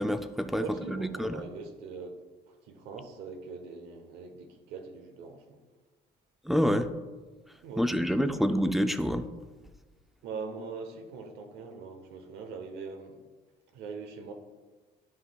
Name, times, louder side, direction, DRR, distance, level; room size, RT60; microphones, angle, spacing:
voice 1, 0.0-0.6 0.9-1.4 6.5-6.9 7.8-9.3, equal, ahead, 8 dB, 0.4 m, -27 dB
voice 2, 0.6-5.6 7.6-8.6 10.2-13.2 13.7-14.3, right 4 dB, 90° right, 6 dB, 0.9 m, -42 dB
10.5 x 5.4 x 2.3 m, 1.3 s
cardioid pair, 110°, 17 cm